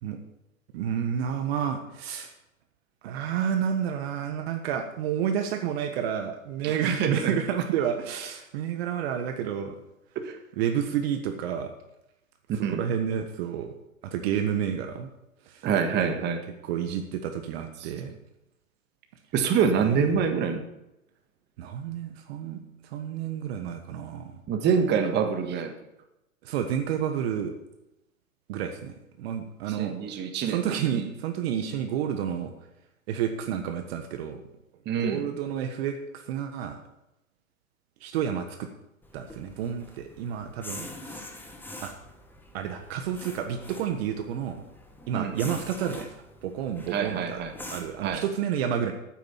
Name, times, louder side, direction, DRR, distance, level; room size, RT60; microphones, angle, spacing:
voice 1, 0.7-2.3 3.0-9.8 10.6-11.7 12.7-13.7 14.0-15.1 15.4-15.7 15.9-16.2 16.7-18.2 19.9-20.0 21.6-24.4 26.4-27.5 28.5-30.0 30.4-32.5 33.1-34.4 35.0-36.8 38.0-38.7 39.1-41.2 41.8-41.9 42.5-44.6 45.1-46.1 46.4-47.4 47.7-48.9, right 8 dB, 45° right, 6 dB, 1.4 m, -30 dB
voice 2, 6.6-7.4 10.2-10.4 12.5-12.8 15.6-16.4 17.8-17.9 19.3-20.6 24.5-25.7 29.7-30.6 30.9-31.0 34.8-35.2 45.1-45.6 46.9-47.5 48.0-48.2, right 6 dB, 25° right, 5 dB, 1.6 m, -26 dB
sound 1, 39.0-48.2, left 1 dB, 5° left, 1.5 m, -44 dB
9.3 x 9.2 x 7.2 m, 0.90 s
hypercardioid pair, 120°, 41 cm